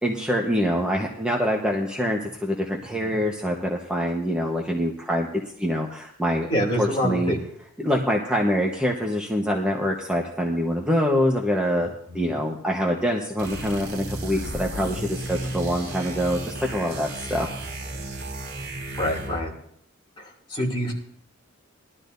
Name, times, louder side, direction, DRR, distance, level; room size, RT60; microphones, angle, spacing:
voice 1, 0.0-5.3 5.6-6.5 6.8-7.3 7.8-17.5, equal, 5° right, -1 dB, 1.1 m, -25 dB
voice 2, 6.5-7.4 12.1-12.3 19.0-19.5 20.2-20.9, equal, 25° left, -2 dB, 2.8 m, -26 dB
sound 1, 13.4-19.5, right 1 dB, 70° right, 3.0 m, -34 dB
20.5 x 12.5 x 2.7 m, 0.67 s
head